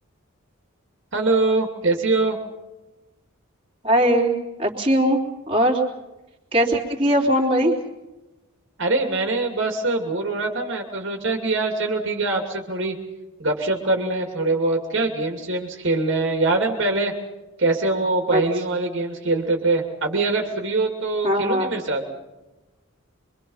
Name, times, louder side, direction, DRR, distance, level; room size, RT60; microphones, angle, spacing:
voice 1, 1.1-2.4 8.8-13.0 13.4-17.1 17.6-22.0, right 2 dB, 55° right, 2 dB, 2.9 m, -23 dB
voice 2, 3.8-4.3 4.6-5.2 5.5-5.8 6.5-7.8 18.3-18.4 21.2-21.7, equal, 25° right, 0 dB, 3.6 m, -20 dB
25.5 x 24.5 x 5.7 m, 1.0 s
head